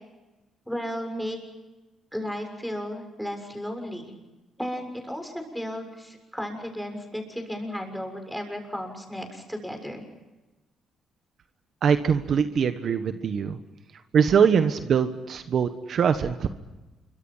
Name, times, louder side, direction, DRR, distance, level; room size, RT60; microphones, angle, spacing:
voice 1, 0.6-1.4 2.1-4.1 4.6-10.0, equal, ahead, 4 dB, 6.8 m, -34 dB
voice 2, 11.8-13.6 14.1-16.5, right 7 dB, 60° right, 9 dB, 1.3 m, -22 dB
27.5 x 24.5 x 5.7 m, 1.1 s
cardioid pair, 90°, 0 cm